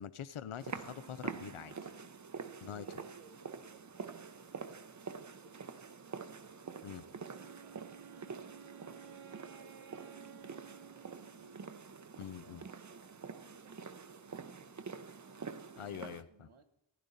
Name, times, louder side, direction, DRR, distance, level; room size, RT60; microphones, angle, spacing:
voice 1, 0.0-1.8 2.6-2.8 6.8-7.0 12.2-12.6 15.8-16.5, left 9 dB, 85° left, 15 dB, 0.7 m, -44 dB
sound 1, 0.6-16.2, right 5 dB, 40° right, 0.6 m, -47 dB
voice 2, 2.4-6.0 6.7-11.7 12.1-14.8 15.2-15.4 15.9-16.6, right 5 dB, 90° right, 8 dB, 1.2 m, -64 dB
Wind instrument woodwind instrument, 7.2-12.0, right 7 dB, 70° right, 0.7 m, -55 dB
16.0 x 10.0 x 4.0 m, 0.80 s
wide cardioid pair, 60°, 48 cm